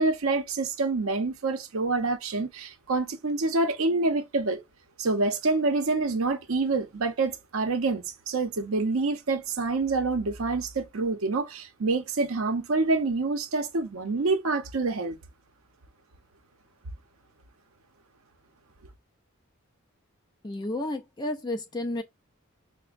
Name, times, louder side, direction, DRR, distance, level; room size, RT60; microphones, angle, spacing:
voice 1, 0.0-4.6 5.0-15.2, right 3 dB, 75° right, 0.7 m, -27 dB
voice 2, 20.4-22.0, left 1 dB, 20° left, 0.4 m, -31 dB
5.9 x 2.1 x 2.4 m
head